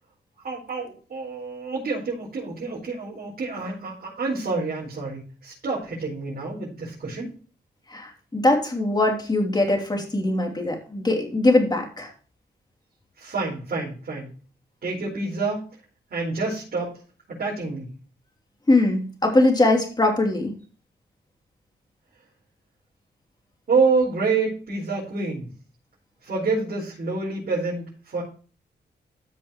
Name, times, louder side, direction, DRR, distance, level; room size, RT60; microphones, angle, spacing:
voice 1, 0.4-7.3 13.2-14.3 14.8-15.6 16.1-16.9 17.3-17.9 23.7-25.5 26.2-28.2, right 4 dB, 55° right, -7 dB, 4.7 m, -27 dB
voice 2, 7.9-12.1 18.7-20.5, left 2 dB, 25° left, 2 dB, 2.9 m, -21 dB
14.0 x 6.3 x 3.0 m, 0.39 s
cardioid pair, 100°, 18 cm